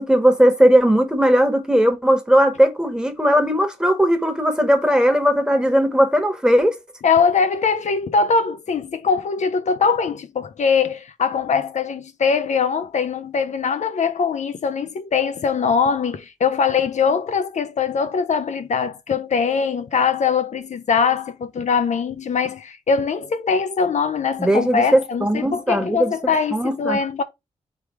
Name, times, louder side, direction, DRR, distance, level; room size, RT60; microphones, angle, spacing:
voice 1, 0.0-6.8 24.4-26.1 26.5-27.0, equal, 5° right, 1.2 m, -18 dB
voice 2, 7.0-27.2, left 5 dB, 65° left, 0.5 m, -22 dB
3.4 x 3.4 x 4.5 m
cardioid pair, 70°, 13 cm